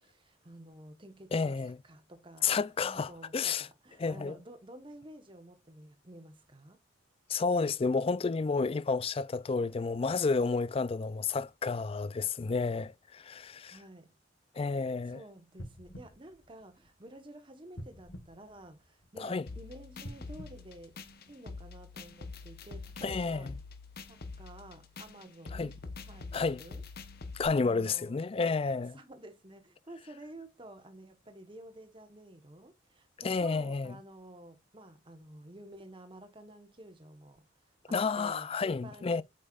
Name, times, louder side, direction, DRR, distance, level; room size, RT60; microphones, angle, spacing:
voice 1, 0.0-2.5 2.8-6.8 13.6-14.1 15.1-21.0 21.3-23.5 24.1-26.8 27.6-28.2 28.9-39.2, right 1 dB, 25° right, 1.1 m, -51 dB
voice 2, 1.3-1.8 2.4-3.7 4.0-4.3 7.3-13.8 14.6-15.2 19.2-19.5 23.0-23.5 25.5-25.7 26.3-26.6 27.3-29.0 33.2-34.0 37.9-39.2, left 4 dB, 30° left, 0.3 m, -31 dB
sound 1, 15.5-17.2 17.7-19.3 19.9-21.6 22.2-22.3, equal, 85° left, 1.6 m, -49 dB
sound 2, 19.5-27.5, left 3 dB, 55° left, 1.0 m, -45 dB
8.1 x 5.5 x 2.4 m
head